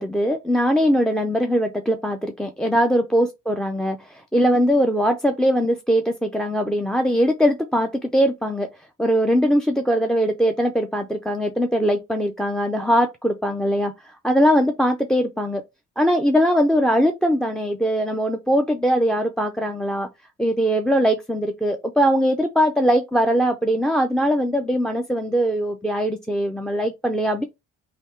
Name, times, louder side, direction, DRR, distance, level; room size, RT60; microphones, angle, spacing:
voice 1, 0.0-8.7 9.0-13.9 14.2-15.6 16.0-20.1 20.4-27.4, equal, ahead, 0.4 m, -21 dB
3.4 x 2.8 x 4.4 m
cardioid pair, 90°, 30 cm